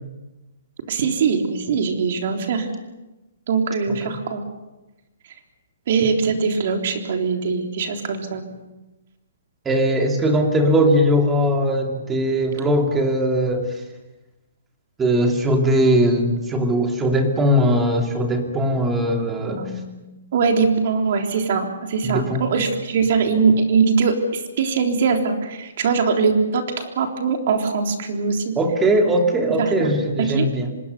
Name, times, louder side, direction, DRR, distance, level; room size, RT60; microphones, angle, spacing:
voice 1, 0.9-2.7 3.5-4.4 5.9-8.4 19.5-20.0 20.3-28.5 29.6-29.9 30.2-30.5, right 5 dB, 45° right, 3 dB, 3.6 m, -21 dB
voice 2, 9.6-13.8 15.0-19.7 22.0-22.4 28.6-30.7, equal, 10° right, 3 dB, 2.5 m, -20 dB
25.5 x 20.5 x 6.9 m, 1.1 s
hypercardioid pair, 165°, 0 cm